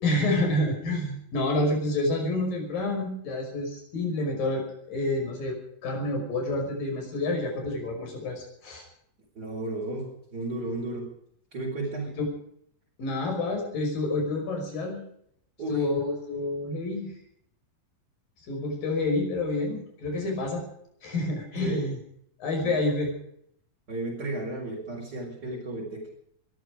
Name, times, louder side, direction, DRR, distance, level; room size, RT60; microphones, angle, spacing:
voice 1, 0.0-8.8 12.2-12.3 13.0-15.0 15.7-17.1 18.5-20.6 21.0-22.0 22.4-23.1, left 2 dB, 75° left, 2 dB, 7.2 m, -28 dB
voice 2, 9.3-11.1 11.5-12.1 15.6-15.8 21.6-21.8 22.6-22.7 23.9-26.1, right 2 dB, 25° right, -4 dB, 4.8 m, -33 dB
21.5 x 13.5 x 5.0 m, 0.69 s
omnidirectional pair, 4.0 m